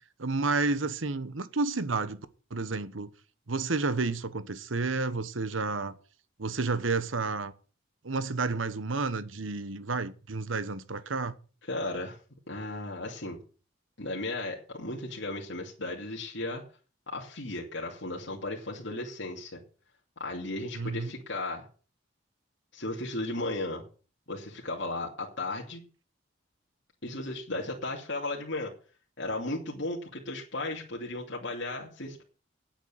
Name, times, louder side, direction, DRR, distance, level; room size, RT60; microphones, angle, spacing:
voice 1, 0.2-2.2 2.5-3.1 3.5-5.9 6.4-7.5 8.0-11.3 20.7-21.1, right 3 dB, 80° right, 1.1 m, -30 dB
voice 2, 11.7-12.2 12.5-13.4 14.0-16.6 17.1-19.6 20.2-21.7 22.7-23.8 24.3-25.8 27.0-28.7 29.2-32.2, left 2 dB, 65° left, 2.7 m, -35 dB
9.1 x 8.9 x 8.9 m
head